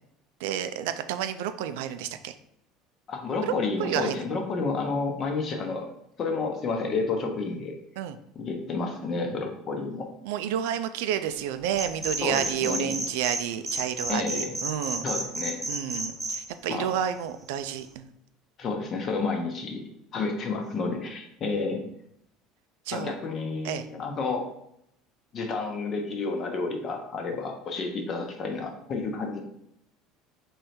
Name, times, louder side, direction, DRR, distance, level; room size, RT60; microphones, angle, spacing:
voice 1, 0.4-2.3 3.5-3.6 3.8-4.2 8.0-8.2 10.2-15.1 15.7-18.1 22.9-23.1 23.6-23.9, right 10 dB, 90° right, 10 dB, 0.3 m, -30 dB
voice 2, 3.1-5.9 6.2-7.8 8.3-10.1 12.2-12.9 14.1-14.5 15.0-15.6 16.7-16.9 18.6-21.8 22.9-24.5 25.3-29.4, left 3 dB, 35° left, 3 dB, 0.8 m, -30 dB
sound 1, 11.8-13.4 13.7-16.4, right 2 dB, 10° right, 0.7 m, -31 dB
3.6 x 3.2 x 4.2 m, 0.75 s
cardioid pair, 145°, 0 cm